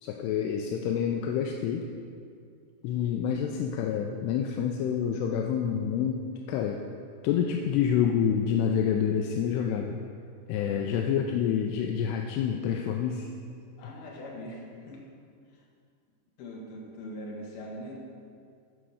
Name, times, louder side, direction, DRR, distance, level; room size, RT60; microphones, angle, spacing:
voice 1, 0.0-1.9 2.8-6.8 7.2-10.0 10.5-13.3, left 8 dB, 80° left, 2 dB, 2.5 m, -28 dB
voice 2, 10.5-11.3 13.8-15.0 15.5-15.6 16.4-18.0, equal, 65° left, -2 dB, 3.1 m, -42 dB
12.0 x 5.1 x 6.3 m, 2.3 s
omnidirectional pair, 5.0 m